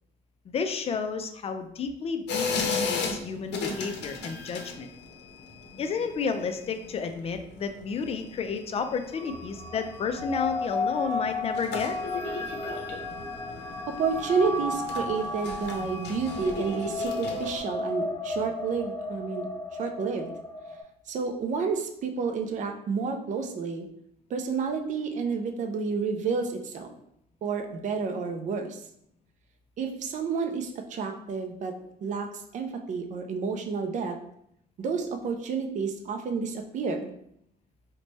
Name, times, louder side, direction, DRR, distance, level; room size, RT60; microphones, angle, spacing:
voice 1, 0.5-4.9 5.8-12.0, left 5 dB, 35° left, 7 dB, 0.3 m, -31 dB
sound 1, 2.3-17.6, left 4 dB, 75° left, 0.6 m, -36 dB
sound 2, 9.1-20.8, left 2 dB, 15° left, 1.2 m, -34 dB
voice 2, 14.0-19.5 19.8-20.3 21.1-23.9 24.3-26.9 27.4-28.8 29.8-31.7 32.0-34.2 34.8-37.1, right 5 dB, 45° right, 4 dB, 0.4 m, -30 dB
3.1 x 2.2 x 4.0 m, 0.72 s
cardioid pair, 130°, 18 cm